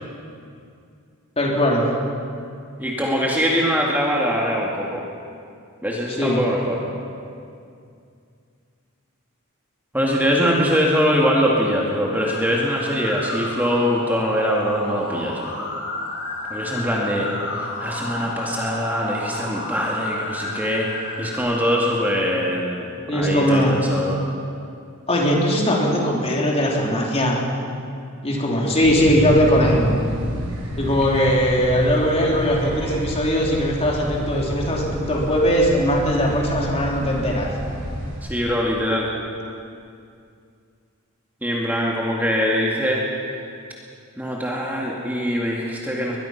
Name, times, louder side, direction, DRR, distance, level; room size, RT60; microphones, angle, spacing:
voice 1, 1.4-1.8 6.2-6.4 23.1-23.7 25.1-27.4 28.2-29.9 30.8-37.5, equal, 30° left, -2 dB, 3.8 m, -20 dB
voice 2, 2.8-5.0 5.8-6.8 9.9-15.6 16.5-24.2 38.2-39.1 41.4-43.0 44.2-46.2, equal, 10° right, -3 dB, 2.2 m, -23 dB
sound 1, 12.2-21.4, left 2 dB, 90° left, 5.0 m, -32 dB
sound 2, 28.8-38.2, right 1 dB, 75° right, 5.9 m, -29 dB
22.0 x 21.5 x 5.9 m, 2.4 s
head